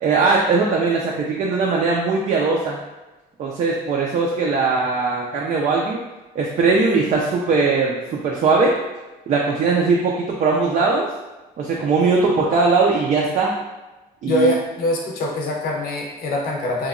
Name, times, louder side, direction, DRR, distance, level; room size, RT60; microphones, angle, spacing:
voice 1, 0.0-2.8 3.4-6.0 6.4-8.7 9.3-11.1 11.6-13.5 14.2-14.5, right 4 dB, 45° right, -2 dB, 0.4 m, -20 dB
voice 2, 14.2-16.9, left 1 dB, 60° left, -1 dB, 0.6 m, -23 dB
2.9 x 2.2 x 2.4 m, 1.1 s
cardioid pair, 110°, 17 cm